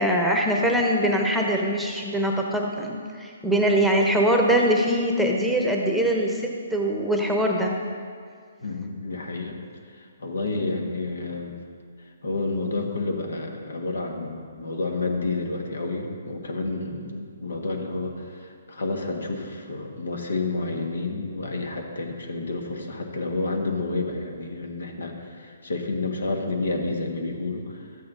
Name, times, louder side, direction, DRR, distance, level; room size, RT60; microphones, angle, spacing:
voice 1, 0.0-7.8 10.5-10.7, equal, ahead, 0 dB, 0.9 m, -23 dB
voice 2, 8.6-9.6 9.9-11.6 12.2-27.8, left 3 dB, 80° left, 3 dB, 1.6 m, -30 dB
13.0 x 8.6 x 3.9 m, 2.1 s
hypercardioid pair, 145°, 0 cm